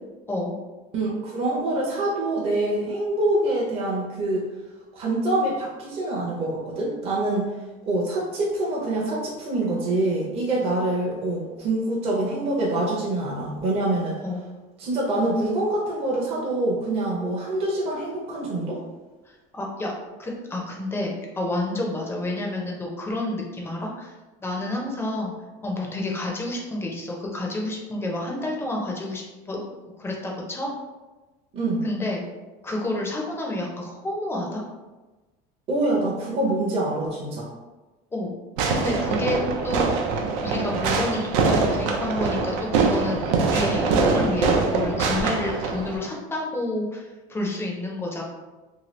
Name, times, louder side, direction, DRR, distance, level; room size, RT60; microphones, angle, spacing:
voice 1, 0.9-4.5 4.9-7.5 7.9-14.2 14.8-18.8 31.5-31.8 35.7-37.5, right 2 dB, 35° right, -4 dB, 0.6 m, -25 dB
voice 2, 19.3-19.9 20.2-24.1 24.4-25.3 25.6-29.6 30.0-30.7 31.8-32.2 32.6-34.7 38.1-38.4 38.7-39.9 40.4-48.2, left 1 dB, 15° left, -1 dB, 0.5 m, -29 dB
Fireworks, 38.6-46.0, right 4 dB, 90° right, 0.5 m, -23 dB
2.8 x 2.3 x 3.1 m, 1.2 s
cardioid pair, 150°, 17 cm